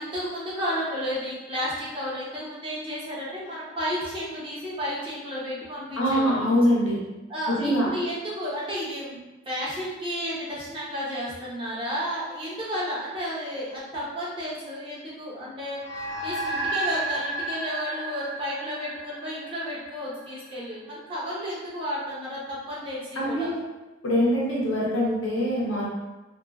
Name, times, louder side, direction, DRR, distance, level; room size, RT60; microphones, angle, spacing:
voice 1, 0.0-6.5 7.3-9.2 9.5-23.5, equal, 25° right, -8 dB, 0.7 m, -32 dB
voice 2, 6.0-7.0 7.5-7.9 23.2-23.6 24.0-25.9, equal, 80° left, -4 dB, 0.7 m, -23 dB
sound 1, 15.8-20.5, right 2 dB, 25° left, 0.6 m, -32 dB
2.3 x 2.3 x 2.3 m, 1.1 s
head